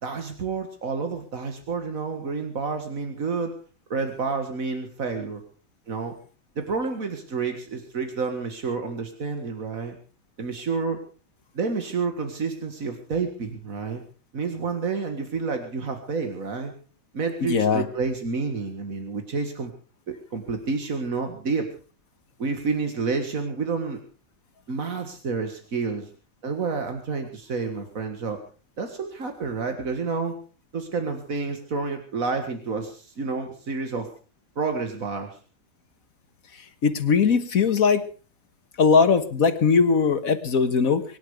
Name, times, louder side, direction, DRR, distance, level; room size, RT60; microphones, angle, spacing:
voice 1, 0.0-3.5 3.9-5.4 5.9-6.1 6.6-10.0 10.4-11.0 11.5-14.0 14.3-16.7 17.1-19.7 20.1-21.7 22.4-24.0 24.7-26.1 26.4-28.4 28.8-30.4 30.7-34.1 34.6-35.4, right 4 dB, 85° right, 6 dB, 2.3 m, -29 dB
voice 2, 17.4-17.8 36.8-38.1 38.8-41.0, left 5 dB, 85° left, 10 dB, 1.8 m, -20 dB
24.5 x 11.0 x 5.0 m, 0.38 s
omnidirectional pair, 1.4 m